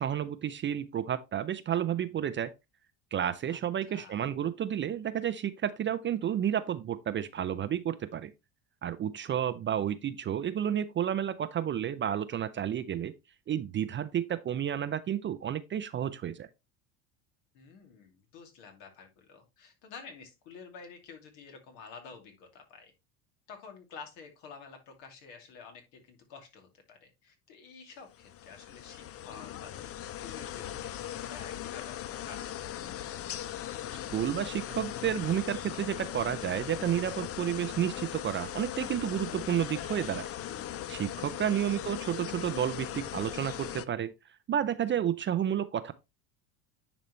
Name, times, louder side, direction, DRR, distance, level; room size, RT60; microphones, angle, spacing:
voice 1, 0.0-2.5 3.1-8.3 8.8-13.1 13.5-16.5 34.1-40.3 40.9-44.1 44.5-45.9, right 10 dB, 30° right, 0.5 m, -31 dB
voice 2, 3.5-4.2 17.5-22.9 23.5-33.2 41.1-41.7, left 5 dB, 70° left, 2.7 m, -50 dB
sound 1, 28.1-43.8, left 11 dB, 35° left, 0.5 m, -39 dB
9.9 x 4.1 x 3.1 m
supercardioid pair, 100°, 43 cm